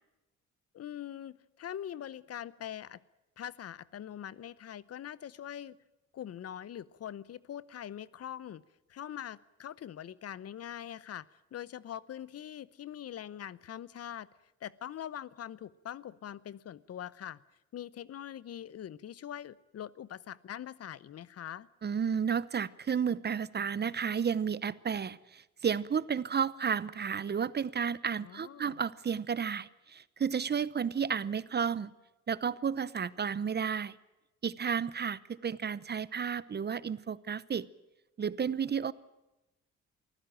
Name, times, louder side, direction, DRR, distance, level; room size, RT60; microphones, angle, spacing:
voice 1, 0.7-3.0 3.4-5.8 6.1-8.6 8.9-14.3 14.6-17.4 17.7-21.7 28.2-28.8, left 10 dB, 55° left, 20 dB, 0.8 m, -43 dB
voice 2, 21.8-31.9 32.3-34.0 34.4-37.7 38.2-38.9, right 7 dB, 35° right, 19 dB, 0.8 m, -32 dB
24.0 x 15.0 x 9.1 m, 0.97 s
cardioid pair, 90°, 30 cm